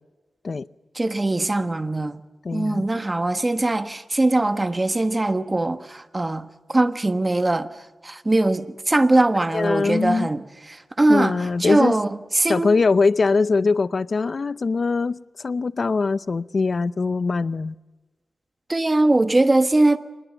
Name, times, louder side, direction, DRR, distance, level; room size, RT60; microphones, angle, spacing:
voice 1, 0.9-2.2 2.5-7.7 8.0-12.7 18.7-20.0, right 2 dB, 25° right, 1.4 m, -21 dB
voice 2, 2.4-2.9 9.5-10.3 11.1-11.9 12.5-17.8, left 4 dB, 55° left, 0.6 m, -22 dB
25.0 x 20.0 x 7.1 m
cardioid pair, 75°, 0 cm